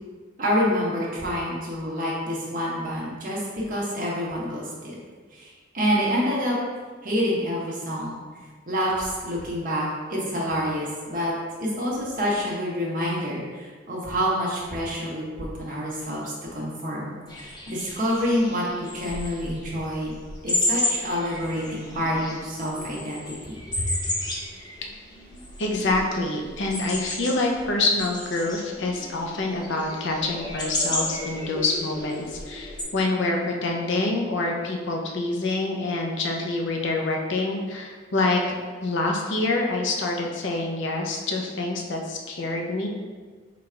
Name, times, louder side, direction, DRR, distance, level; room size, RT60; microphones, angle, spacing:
voice 1, 0.4-3.4 3.7-5.0 5.3-6.5 7.0-8.2 8.7-11.3 11.6-17.2 17.7-18.6 18.9-20.1 20.4-23.9, equal, 45° right, -4 dB, 1.0 m, -27 dB
sound 1, 17.3-32.8, left 1 dB, 20° left, 0.7 m, -33 dB
sound 2, 21.3-34.9, left 1 dB, 90° left, 1.0 m, -44 dB
voice 2, 25.6-42.9, left 2 dB, 65° left, 0 dB, 0.6 m, -26 dB
3.8 x 2.5 x 4.3 m, 1.5 s
head